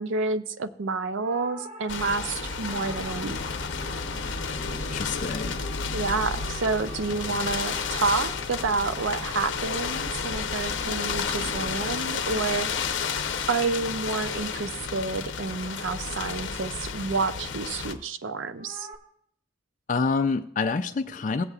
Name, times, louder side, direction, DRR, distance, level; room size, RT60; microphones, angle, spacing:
voice 1, 0.0-3.4 5.9-12.7 13.5-18.9, right 4 dB, 70° right, 11 dB, 0.5 m, -29 dB
sound 1, 1.1-11.6 18.6-18.9, right 1 dB, 30° right, 1.1 m, -45 dB
sound 2, 1.9-17.9, left 5 dB, 65° left, 0.8 m, -31 dB
voice 2, 4.9-5.6 19.9-21.4, left 4 dB, 40° left, 6 dB, 0.4 m, -27 dB
16.5 x 8.2 x 2.4 m, 0.67 s
head